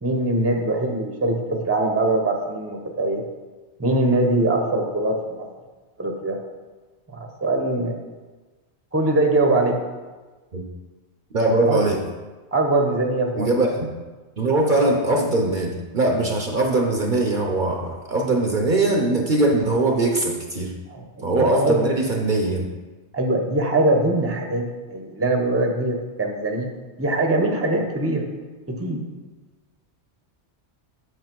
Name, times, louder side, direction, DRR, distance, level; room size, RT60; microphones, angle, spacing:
voice 1, 0.0-3.2 3.8-5.5 6.0-6.4 7.1-8.0 8.9-9.8 11.7-11.8 12.5-13.5 20.9-21.9 23.1-26.7 27.0-28.3 28.7-29.0, right 2 dB, 15° right, 2 dB, 0.8 m, -22 dB
voice 2, 11.3-12.0 13.4-13.9 14.4-20.7 21.2-22.7, right 2 dB, 50° right, 1 dB, 0.9 m, -21 dB
7.9 x 6.2 x 4.6 m, 1.3 s
omnidirectional pair, 1.2 m